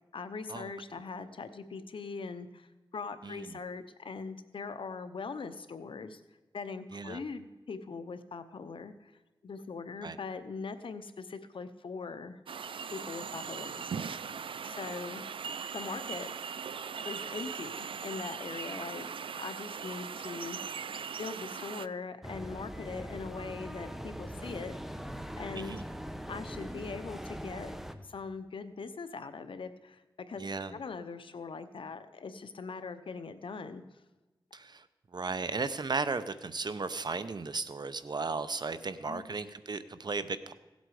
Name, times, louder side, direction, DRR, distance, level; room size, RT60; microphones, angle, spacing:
voice 1, 0.1-2.7 2.9-6.2 6.5-9.1 9.4-12.4 12.9-14.1 14.6-15.3 15.7-16.3 17.0-19.1 19.4-20.6 21.2-24.8 25.4-25.8 26.3-27.7 28.0-30.0 30.3-30.4 30.7-33.8 39.0-39.2, left 4 dB, 80° left, 10 dB, 0.8 m, -41 dB
voice 2, 3.2-3.6 6.9-7.2 10.0-10.2 25.5-25.8 30.4-30.8 34.5-34.9 35.1-40.5, right 4 dB, 55° right, 12 dB, 0.7 m, -35 dB
sound 1, 12.5-21.9, right 6 dB, 85° right, 0.4 m, -39 dB
sound 2, 22.2-27.9, equal, 5° right, 0.8 m, -41 dB
16.5 x 8.0 x 4.8 m, 1.1 s
wide cardioid pair, 60°, 9 cm